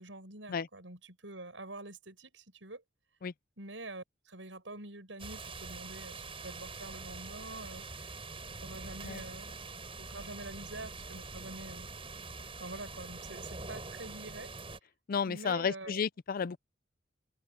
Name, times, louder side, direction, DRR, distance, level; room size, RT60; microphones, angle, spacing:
voice 1, 0.0-2.8 3.6-8.1 8.6-9.6 10.0-11.9 12.6-14.5 15.3-16.0, right 2 dB, 85° right, 7.9 m, -46 dB
sound 1, 5.2-14.8, right 3 dB, 30° right, 6.2 m, -44 dB
voice 2, 15.1-16.6, left 6 dB, 50° left, 0.4 m, -32 dB
head